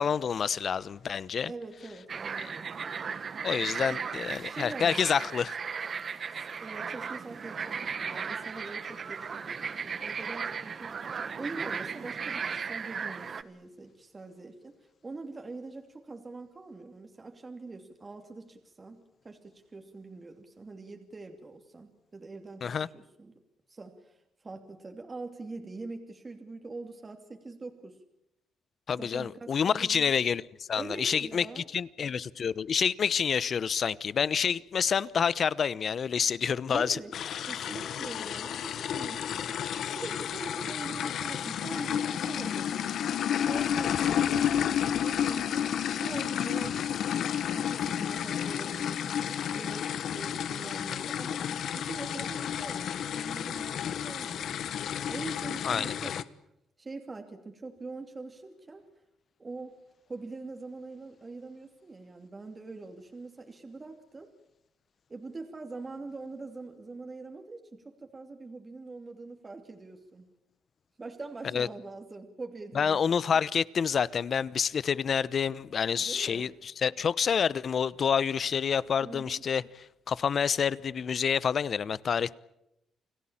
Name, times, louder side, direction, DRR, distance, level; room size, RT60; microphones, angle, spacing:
voice 1, 0.0-1.5 2.4-2.5 3.4-5.6 22.6-22.9 28.9-37.0 37.3-37.4 55.6-56.1 71.5-71.7 72.7-82.3, left 7 dB, 50° left, 0.9 m, -28 dB
voice 2, 1.5-2.7 3.9-4.0 4.4-5.3 6.1-11.0 11.4-23.3 23.7-24.2 24.4-28.0 28.9-30.1 30.7-31.7 36.7-37.1 37.4-43.1 43.4-45.7 46.0-51.4 51.7-54.5 54.8-56.1 56.8-58.8 59.4-59.7 60.1-64.3 65.1-70.3 71.0-73.0 73.3-73.4 76.0-76.5 79.0-79.4, right 3 dB, 30° right, 2.8 m, -43 dB
sound 1, 2.1-13.4, right 6 dB, 45° right, 1.4 m, -36 dB
sound 2, 37.1-56.2, left 9 dB, 70° left, 1.2 m, -31 dB
29.0 x 18.5 x 8.8 m
cardioid pair, 90°, 0 cm